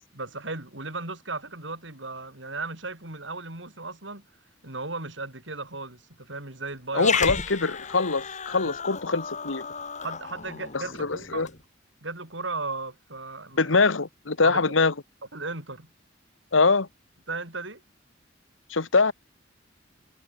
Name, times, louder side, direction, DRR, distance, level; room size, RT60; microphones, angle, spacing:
voice 1, 0.1-4.2 4.6-7.2 8.6-8.7 10.0-11.5 12.0-13.7 14.4-14.7 15.3-15.9 17.3-17.8, right 3 dB, 70° right, 5.6 m, -36 dB
voice 2, 6.9-9.7 10.7-11.5 13.6-14.9 16.5-16.9 18.7-19.1, left 4 dB, 90° left, 1.4 m, -23 dB
Growling, 6.9-11.6, left 6 dB, 40° left, 5.0 m, -33 dB
head